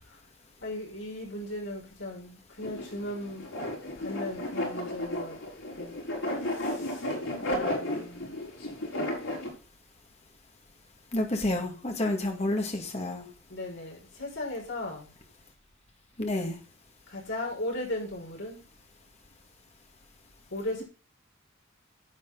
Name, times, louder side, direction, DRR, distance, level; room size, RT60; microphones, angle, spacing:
voice 1, 0.6-5.4 5.7-6.0 6.4-7.1 7.4-8.4 12.4-12.6 13.5-15.1 17.1-18.6 20.5-20.8, left 1 dB, 65° left, 5.8 m, -37 dB
sound 1, 2.6-9.5, left 1 dB, 80° left, 5.9 m, -33 dB
voice 2, 11.1-13.3 16.2-16.6, left 1 dB, 30° left, 2.0 m, -29 dB
11.0 x 8.3 x 3.9 m
head